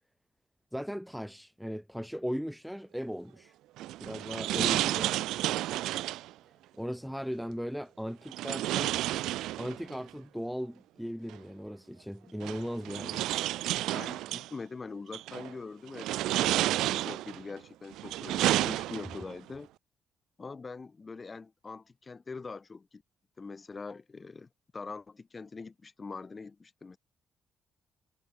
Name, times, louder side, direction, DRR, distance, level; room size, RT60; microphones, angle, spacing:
voice 1, 0.7-3.5 4.0-5.2 6.8-9.0 9.6-13.3, equal, ahead, 1.8 m, -37 dB
sound 1, 3.8-6.3 8.3-10.0 11.3-11.4 12.4-14.5 15.1-15.5 15.9-17.4 17.9-19.3, right 15 dB, 90° right, 2.9 m, -31 dB
voice 2, 13.9-19.7 20.4-23.0 23.4-27.0, left 4 dB, 30° left, 4.4 m, -43 dB
cardioid pair, 90°, 0 cm